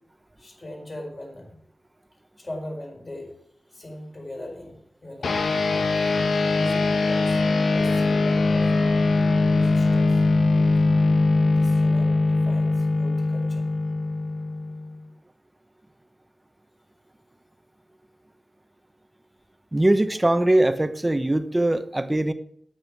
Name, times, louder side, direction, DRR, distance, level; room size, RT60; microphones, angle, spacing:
voice 1, 0.4-1.6 2.4-3.3 3.7-5.5 6.5-7.4 7.7-8.9 9.5-10.2 11.5-13.7, left 1 dB, 35° left, 1 dB, 4.5 m, -39 dB
sound 1, 5.2-15.0, left 3 dB, 80° left, 1.0 m, -21 dB
voice 2, 19.7-22.3, right 1 dB, 15° right, 10 dB, 1.0 m, -21 dB
9.7 x 9.0 x 7.1 m, 0.66 s
wide cardioid pair, 80°, 0 cm